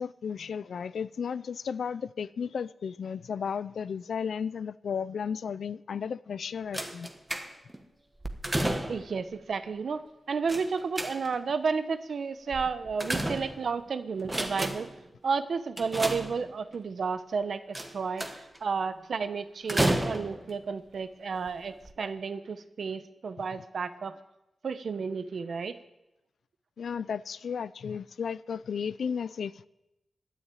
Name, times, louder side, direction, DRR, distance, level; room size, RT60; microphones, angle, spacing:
voice 1, 0.0-7.1 26.8-29.7, left 6 dB, 75° left, 0.5 m, -34 dB
sound 1, 6.7-7.8 8.2-9.2 10.5-11.5 12.5-13.8 14.2-15.0 15.8-16.7 17.7-18.6 19.7-20.5 21.3-21.5 21.8-21.9, right 1 dB, 15° right, 1.4 m, -31 dB
voice 2, 8.9-10.0 10.3-14.9 15.2-18.2 18.6-24.1 24.6-25.8, right 5 dB, 60° right, 0.9 m, -32 dB
12.0 x 10.0 x 9.2 m
wide cardioid pair, 115°, 0 cm